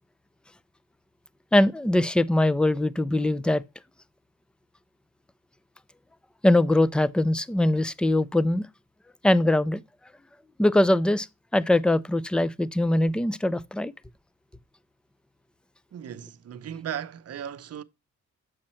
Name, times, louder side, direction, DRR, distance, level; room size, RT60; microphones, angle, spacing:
voice 1, 1.5-3.6 6.4-8.7 9.2-9.8 10.6-11.3 11.5-13.9, left 1 dB, 5° left, 0.4 m, -22 dB
voice 2, 15.9-17.8, right 9 dB, 55° right, 0.7 m, -36 dB
7.4 x 6.4 x 4.3 m
cardioid pair, 100°, 29 cm